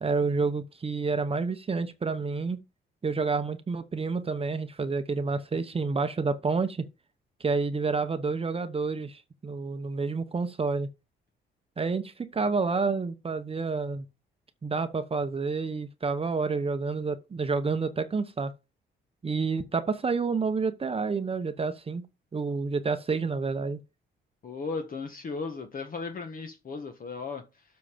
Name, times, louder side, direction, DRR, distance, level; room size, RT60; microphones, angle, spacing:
voice 1, 0.0-2.6 3.0-6.8 7.4-10.9 11.8-14.1 14.6-18.5 19.2-22.0 22.3-23.8, right 4 dB, 30° right, 0.9 m, -29 dB
voice 2, 24.4-27.6, left 4 dB, 45° left, 1.4 m, -36 dB
7.5 x 5.7 x 5.1 m
cardioid pair, 90°, 20 cm